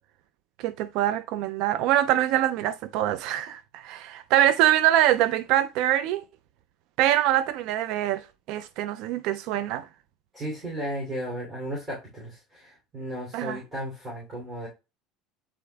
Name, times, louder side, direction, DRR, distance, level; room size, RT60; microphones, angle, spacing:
voice 1, 0.6-6.2 7.0-9.9 13.3-13.6, right 13 dB, 55° right, 0.4 m, -24 dB
voice 2, 10.3-14.7, equal, 10° right, 2.8 m, -35 dB
8.7 x 5.0 x 2.3 m
cardioid pair, 165°, 0 cm